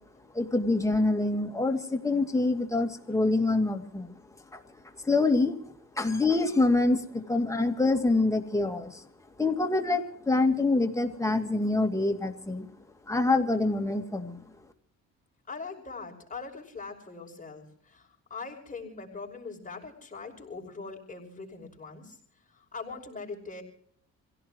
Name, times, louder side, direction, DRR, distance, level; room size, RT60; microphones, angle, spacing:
voice 1, 0.3-4.2 4.5-4.6 5.0-5.6 6.0-9.0 9.4-12.7 13.1-14.4, left 2 dB, 10° left, 3 dB, 2.6 m, -26 dB
voice 2, 15.5-23.6, left 4 dB, 25° left, 0 dB, 5.6 m, -42 dB
27.0 x 17.0 x 3.1 m, 0.64 s
cardioid pair, 90°, 30 cm